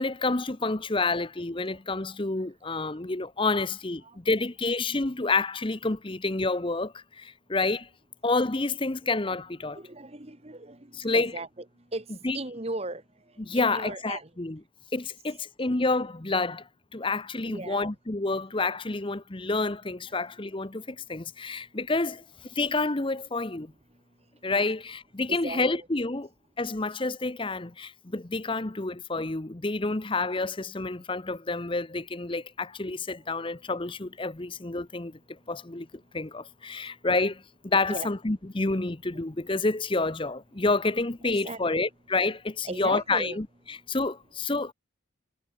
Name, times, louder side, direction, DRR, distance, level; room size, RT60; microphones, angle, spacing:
voice 1, 0.0-7.9 8.2-9.8 10.9-11.3 12.2-12.4 13.4-14.6 14.9-23.7 24.4-26.3 26.6-35.2 35.5-35.9 36.1-44.7, left 3 dB, 25° left, 0.9 m, -29 dB
voice 2, 9.7-12.1 12.3-13.0 13.5-14.3 17.4-17.9 25.3-25.9 33.4-33.5 37.9-38.1 41.2-41.8 42.6-43.4, right 2 dB, 30° right, 1.5 m, -37 dB
head